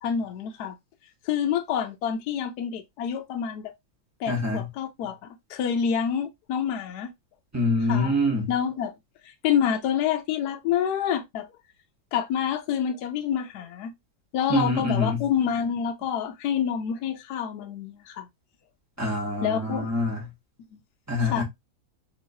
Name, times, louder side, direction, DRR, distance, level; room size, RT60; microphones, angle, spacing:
voice 1, 0.0-0.7 1.3-3.7 4.2-7.1 7.9-8.1 8.5-8.9 9.4-11.5 12.1-13.9 14.3-18.3 19.4-19.9 21.3-21.4, left 8 dB, 70° left, 1.0 m, -27 dB
voice 2, 4.3-4.7 7.5-8.5 14.5-15.2 19.0-20.3 21.1-21.4, left 1 dB, 10° right, 0.9 m, -25 dB
3.6 x 3.0 x 2.7 m
omnidirectional pair, 2.1 m